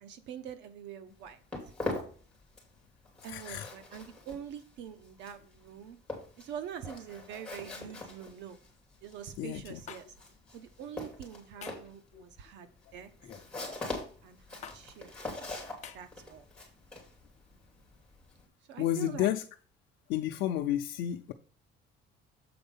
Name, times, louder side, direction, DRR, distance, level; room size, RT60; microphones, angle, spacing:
voice 1, 0.0-1.4 3.2-6.0 6.4-8.6 9.0-10.2 10.5-13.1 14.2-15.1 15.9-16.5 18.7-19.3, right 8 dB, 70° right, 0.8 m, -45 dB
Walk footsteps, 1.1-2.8 3.1-18.5, left 2 dB, 5° left, 2.8 m, -42 dB
voice 2, 3.3-3.7 9.4-9.8 12.1-12.2 18.8-19.4 20.1-21.3, left 12 dB, 85° left, 0.6 m, -31 dB
sound 1, 9.9-10.0 11.6-11.9 13.2-13.5 14.6-14.8 15.8-16.0, left 8 dB, 35° left, 0.8 m, -45 dB
7.8 x 4.3 x 5.5 m
cardioid pair, 175°, 19 cm